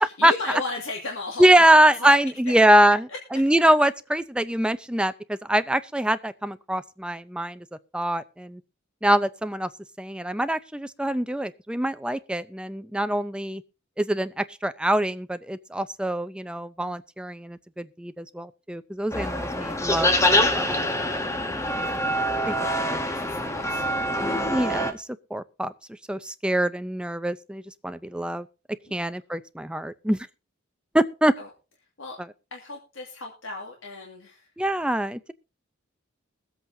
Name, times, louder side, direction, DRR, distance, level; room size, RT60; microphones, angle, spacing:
voice 1, 0.0-2.2 3.1-3.2 20.7-21.1 22.4-23.9 28.9-29.0 31.4-31.5 32.0-32.2 32.5-34.5, left 3 dB, 65° left, 2.1 m, -36 dB
voice 2, 1.4-7.7 7.9-8.6 9.0-9.7 10.0-13.6 14.0-20.8 21.7-21.9 22.5-22.6 22.9-23.0 24.5-25.7 26.1-28.5 28.9-30.3 30.9-31.3 34.6-35.3, right 1 dB, 5° right, 0.5 m, -23 dB
sound 1, 19.1-24.9, left 1 dB, 15° left, 1.1 m, -25 dB
22.0 x 8.1 x 2.7 m
head